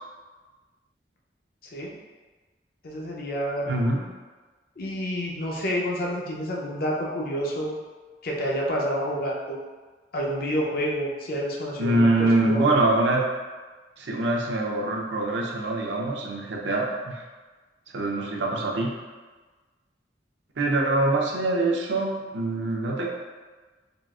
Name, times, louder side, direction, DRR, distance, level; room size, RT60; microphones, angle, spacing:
voice 1, 2.8-3.7 4.8-7.7 8.2-9.6 10.1-12.8, equal, 55° left, -2 dB, 0.5 m, -29 dB
voice 2, 3.7-4.1 11.8-13.2 14.0-17.2 17.9-18.9 20.6-23.1, right 2 dB, 80° right, -1 dB, 0.5 m, -24 dB
3.7 x 2.3 x 2.4 m, 1.3 s
head